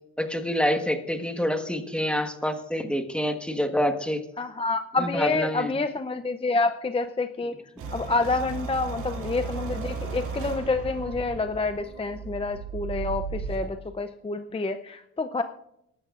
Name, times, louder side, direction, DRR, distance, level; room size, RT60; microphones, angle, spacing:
voice 1, 0.2-4.2 5.0-5.7, equal, 5° left, 6 dB, 1.4 m, -27 dB
voice 2, 4.4-7.6 7.9-15.4, left 3 dB, 20° left, 8 dB, 0.6 m, -28 dB
sound 1, 7.8-13.7, right 5 dB, 85° right, 2.8 m, -35 dB
22.0 x 12.0 x 2.5 m, 0.81 s
cardioid pair, 90°, 30 cm